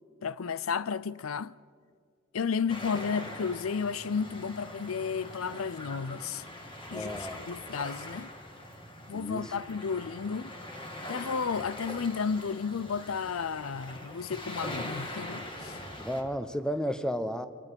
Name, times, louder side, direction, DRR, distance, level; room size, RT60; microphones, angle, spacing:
voice 1, 0.2-1.5 2.3-6.4 6.9-8.3 9.1-10.5 11.1-15.8, left 6 dB, 85° left, 0.6 m, -33 dB
sound 1, 2.7-16.2, left 1 dB, 25° left, 2.7 m, -42 dB
voice 2, 6.9-7.4 9.1-9.5 16.0-17.5, equal, 5° left, 1.0 m, -33 dB
27.0 x 25.0 x 5.3 m
head